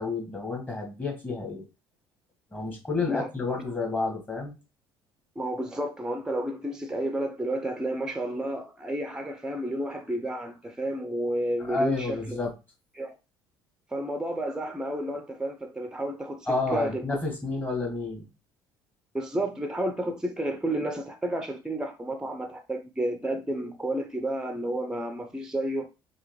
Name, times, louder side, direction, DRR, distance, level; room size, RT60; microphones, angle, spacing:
voice 1, 0.0-1.6 2.5-4.6 11.7-12.5 16.5-18.3, left 3 dB, 15° left, 1.7 m, -30 dB
voice 2, 3.0-3.3 5.4-12.4 13.0-13.1 13.9-17.0 19.1-25.9, right 1 dB, 5° right, 0.8 m, -31 dB
4.8 x 3.0 x 3.1 m
figure-of-eight pair, 55°, 12 cm